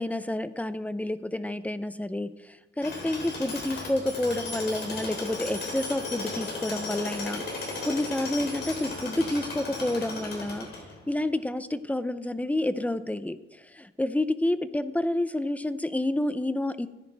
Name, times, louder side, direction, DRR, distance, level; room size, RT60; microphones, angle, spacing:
voice 1, 0.0-7.4 7.8-10.7 11.1-13.4 13.7-16.9, left 1 dB, 5° left, 13 dB, 0.6 m, -29 dB
Tools, 2.8-11.1, left 3 dB, 55° left, 3.6 m, -35 dB
13.5 x 10.5 x 3.4 m, 1.0 s
cardioid pair, 90°, 20 cm